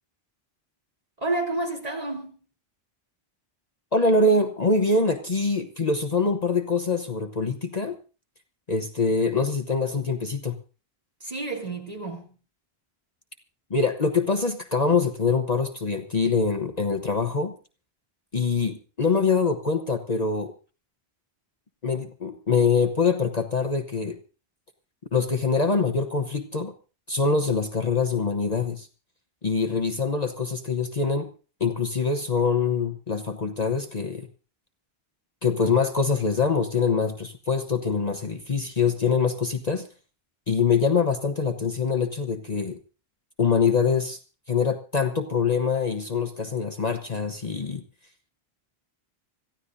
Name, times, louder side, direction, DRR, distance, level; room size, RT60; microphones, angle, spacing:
voice 1, 1.2-2.4 11.2-12.3, right 2 dB, 35° right, 3.6 m, -30 dB
voice 2, 3.9-7.9 8.7-10.6 13.7-17.5 18.3-20.5 21.8-24.2 25.1-26.7 27.1-28.9 29.4-31.3 31.6-34.3 35.4-39.9 40.5-42.8 43.4-44.2 44.5-47.8, left 4 dB, 40° left, 1.1 m, -24 dB
26.0 x 14.5 x 2.6 m
omnidirectional pair, 1.1 m